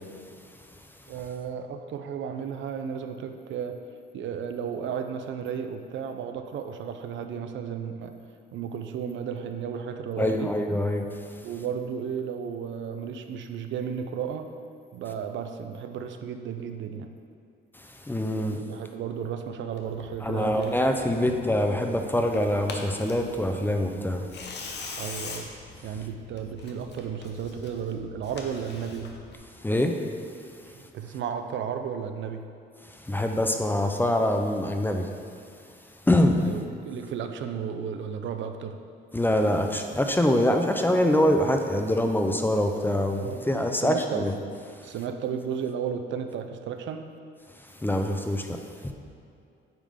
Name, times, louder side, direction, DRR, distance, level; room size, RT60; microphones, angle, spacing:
voice 1, 1.1-3.8 4.1-8.1 8.5-10.5 11.4-14.5 14.9-17.1 18.4-21.4 25.0-25.5 25.8-29.1 30.7-32.4 36.4-38.8 43.2-43.4 43.7-44.3 44.8-47.1, right 7 dB, 70° right, 7 dB, 0.5 m, -34 dB
voice 2, 10.2-11.1 17.7-18.6 20.2-24.3 29.6-30.0 32.8-35.1 36.0-36.4 39.1-44.3 44.8-44.9 47.6-48.9, left 1 dB, 10° left, 4 dB, 0.6 m, -25 dB
Tearing, 19.8-29.4, left 4 dB, 60° left, 1.0 m, -43 dB
8.8 x 3.6 x 5.0 m, 2.5 s
cardioid pair, 90°, 20 cm